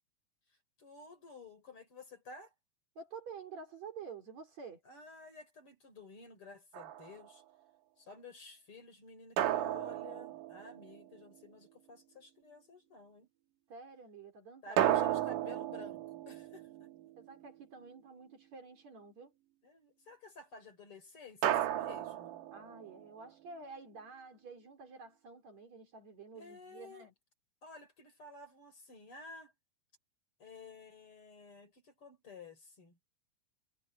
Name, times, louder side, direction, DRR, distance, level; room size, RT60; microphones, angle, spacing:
voice 1, 0.8-2.5 4.8-7.4 8.0-13.3 14.6-16.9 19.6-22.4 26.3-27.1 27.6-29.5 30.4-33.0, left 3 dB, 40° left, 4.8 m, -53 dB
voice 2, 3.0-4.8 13.7-15.0 17.2-19.3 22.5-27.1, right 5 dB, 50° right, 4.8 m, -50 dB
sound 1, 6.7-7.3 9.4-11.2 14.8-17.4 21.4-23.1, right 12 dB, 70° right, 2.6 m, -34 dB
omnidirectional pair, 4.1 m